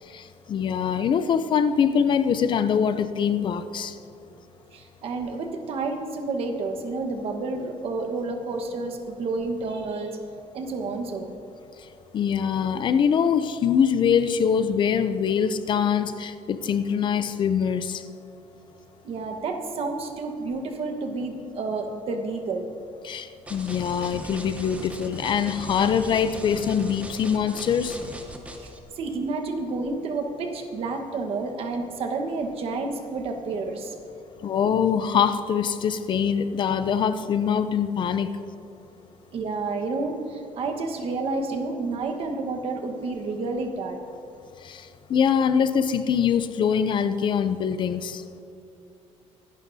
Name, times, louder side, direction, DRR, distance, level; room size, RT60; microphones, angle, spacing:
voice 1, 0.1-4.0 12.1-18.0 23.0-28.0 34.4-38.4 44.6-48.2, left 7 dB, 40° left, 11 dB, 0.4 m, -23 dB
voice 2, 4.7-10.2 10.5-11.3 19.0-22.7 28.6-28.7 29.0-33.9 39.3-44.0, right 3 dB, 50° right, 5 dB, 1.3 m, -30 dB
sound 1, 23.5-28.8, right 1 dB, 10° right, 0.9 m, -39 dB
24.5 x 11.5 x 2.7 m, 2.5 s
cardioid pair, 175°, 13 cm